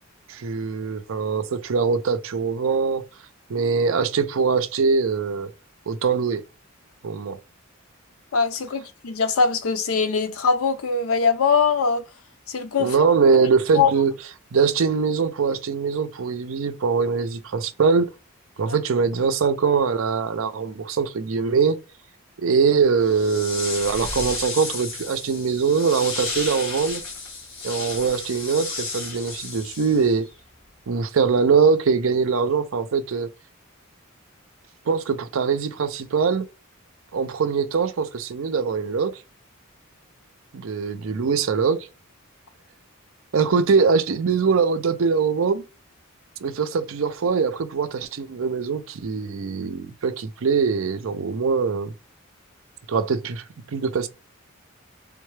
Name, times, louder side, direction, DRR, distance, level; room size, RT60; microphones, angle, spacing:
voice 1, 0.3-3.0 3.5-5.5 5.9-6.4 7.0-7.4 12.8-14.1 14.5-18.1 18.6-21.8 22.4-27.0 27.6-30.3 30.9-33.3 34.9-36.5 37.1-39.2 40.5-41.9 43.3-45.6 46.4-51.9 52.9-54.1, right 5 dB, 70° right, 0.5 m, -22 dB
voice 2, 8.3-12.0 12.5-12.9 13.7-13.9, left 5 dB, 80° left, 0.6 m, -21 dB
sound 1, 23.0-30.3, left 3 dB, 60° left, 1.8 m, -33 dB
3.6 x 2.2 x 3.2 m
head